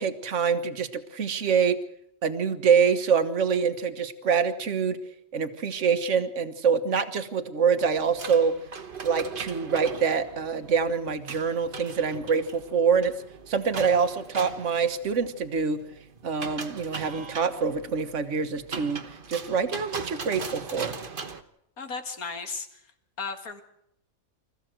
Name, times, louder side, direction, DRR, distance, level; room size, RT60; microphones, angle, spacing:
voice 1, 0.0-1.8 2.2-5.0 5.3-8.5 9.0-13.1 13.5-15.8 16.2-19.0 19.3-20.9, right 6 dB, 60° right, 9 dB, 1.6 m, -25 dB
sound 1, 7.8-21.4, right 5 dB, 40° right, 1.3 m, -40 dB
voice 2, 21.8-22.8 23.2-23.6, left 4 dB, 80° left, 7 dB, 2.3 m, -35 dB
25.5 x 14.5 x 7.8 m, 0.77 s
omnidirectional pair, 1.5 m